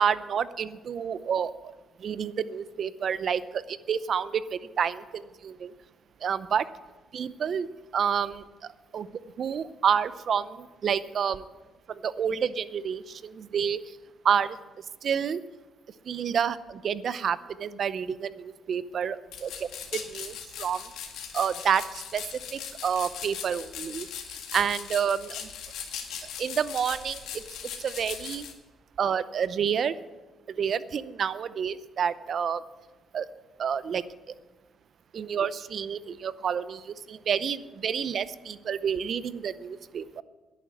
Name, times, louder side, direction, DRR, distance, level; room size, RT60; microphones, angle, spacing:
voice 1, 0.0-1.5 2.0-5.7 6.2-6.6 7.1-7.7 7.9-8.4 8.9-9.1 9.4-11.4 11.9-14.0 14.2-14.6 15.0-15.4 16.1-19.5 19.9-20.9 21.3-22.2 22.5-25.5 26.4-27.4 27.8-28.5 29.0-30.0 30.5-32.6 33.1-33.3 33.6-34.0 35.1-40.2, right 7 dB, 55° right, 16 dB, 0.6 m, -29 dB
sound 1, 19.3-28.5, left 8 dB, 85° left, 1.9 m, -39 dB
11.0 x 8.5 x 9.5 m, 1.2 s
cardioid pair, 90°, 0 cm